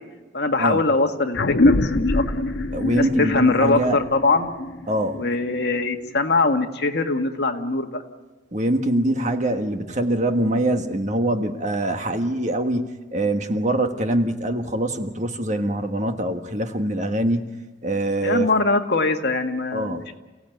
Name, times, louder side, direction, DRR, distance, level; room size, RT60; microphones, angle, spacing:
voice 1, 0.3-2.2 2.9-4.5 5.1-8.0 18.2-20.2, left 3 dB, 60° left, 4 dB, 1.9 m, -22 dB
sound 1, 1.3-6.2, left 2 dB, 75° left, 1.1 m, -24 dB
voice 2, 2.7-4.0 4.9-5.3 8.5-17.5 17.8-18.5 19.7-20.2, right 1 dB, 40° right, 6 dB, 1.6 m, -24 dB
29.0 x 17.0 x 9.3 m, 1.2 s
head